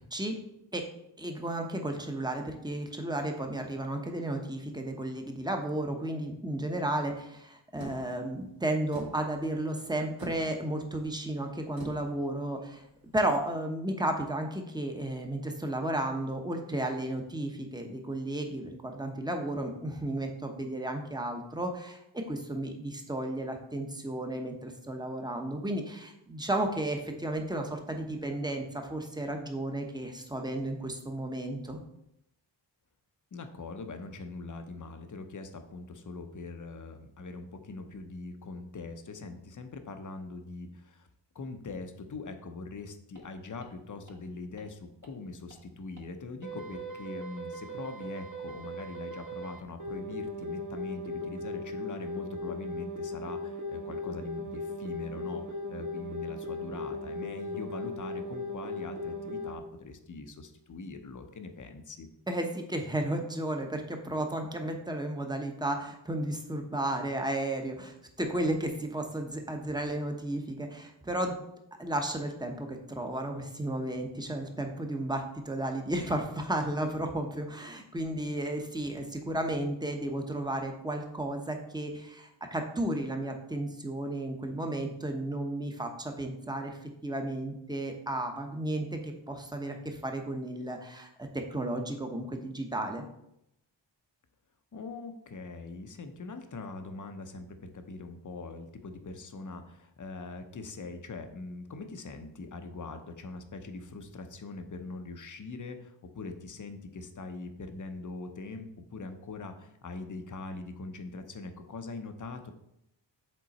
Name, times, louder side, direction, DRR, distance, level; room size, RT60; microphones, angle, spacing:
voice 1, 1.2-12.8 13.1-31.8 62.3-71.4 71.8-93.0, right 1 dB, 10° right, 3 dB, 0.9 m, -33 dB
sound 1, 7.8-13.4, right 2 dB, 85° right, 2.0 m, -47 dB
voice 2, 33.3-41.1 41.3-62.1 94.7-112.5, left 3 dB, 45° left, 7 dB, 0.8 m, -42 dB
sound 2, 43.2-43.3 43.6-43.7 44.1-44.2 44.6-44.7 45.0-45.1 45.5-45.6 46.0-46.1 46.4-59.6, left 1 dB, 40° right, 1.4 m, -38 dB
7.6 x 3.8 x 4.1 m, 0.81 s
wide cardioid pair, 95°, 44 cm